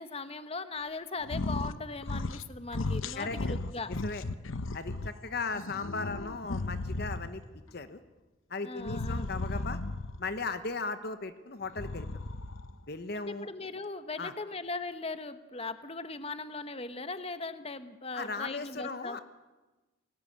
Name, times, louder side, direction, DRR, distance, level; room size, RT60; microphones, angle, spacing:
voice 1, 0.0-3.9 8.6-9.3 13.1-19.2, left 3 dB, 30° left, 11 dB, 1.1 m, -39 dB
sound 1, 1.2-2.5 2.7-5.1 5.5-7.4 8.8-10.2 11.6-12.7, left 2 dB, 80° left, 1.0 m, -35 dB
voice 2, 3.2-3.6 4.0-4.2 4.7-7.4 7.7-8.0 8.5-9.8 10.2-12.1 12.9-13.5 14.2-14.3 18.1-19.2, left 3 dB, 50° left, 11 dB, 1.0 m, -37 dB
28.5 x 18.5 x 8.8 m, 1.2 s
head